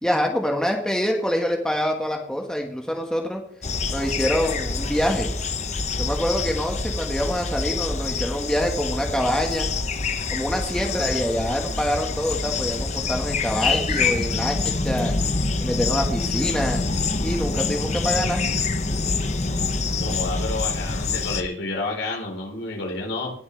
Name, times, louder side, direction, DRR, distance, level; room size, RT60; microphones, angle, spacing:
voice 1, 0.0-3.4 3.9-5.3 6.0-9.7 10.3-15.1 15.6-16.8 17.2-18.4, equal, 5° left, 1 dB, 1.5 m, -25 dB
sound 1, 3.6-21.4, left 3 dB, 35° left, 0.9 m, -26 dB
voice 2, 20.0-23.3, left 2 dB, 80° left, 0 dB, 4.2 m, -30 dB
19.0 x 7.8 x 3.3 m, 0.62 s
head